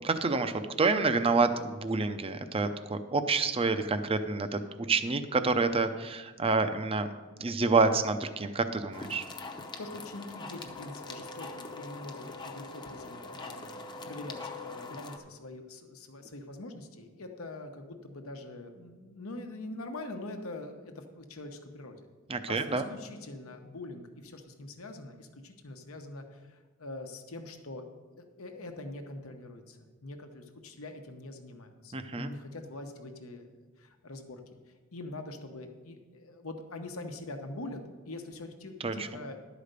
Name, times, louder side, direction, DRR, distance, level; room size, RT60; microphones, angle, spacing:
voice 1, 0.0-4.6 4.9-7.1 7.4-9.2 22.3-22.8 31.9-32.3 38.8-39.1, right 4 dB, 25° right, 9 dB, 0.5 m, -28 dB
sound 1, 8.9-15.2, left 3 dB, 20° left, 0.7 m, -43 dB
voice 2, 9.8-22.1 22.5-27.8 28.2-33.5 33.8-34.4 34.9-37.8 38.1-39.4, left 2 dB, 80° left, 5 dB, 1.0 m, -44 dB
11.5 x 5.0 x 6.6 m, 1.4 s
head